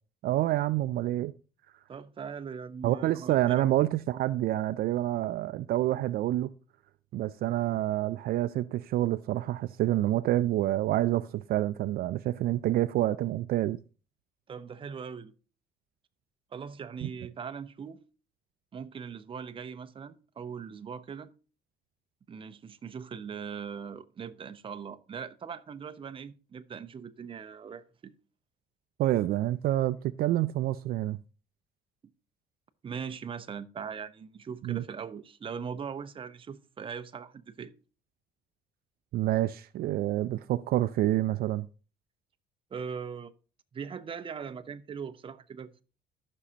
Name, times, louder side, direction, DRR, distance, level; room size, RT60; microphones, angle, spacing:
voice 1, 0.2-1.3 2.8-6.5 7.1-13.8 17.0-17.1 29.0-31.2 34.6-34.8 39.1-41.7, right 14 dB, 65° right, 0.4 m, -28 dB
voice 2, 1.9-3.4 14.5-15.3 16.5-18.0 18.7-21.3 22.3-28.1 32.8-37.7 42.7-43.3 43.7-45.8, right 6 dB, 30° right, 0.7 m, -40 dB
14.0 x 6.2 x 2.8 m
cardioid pair, 110°, 17 cm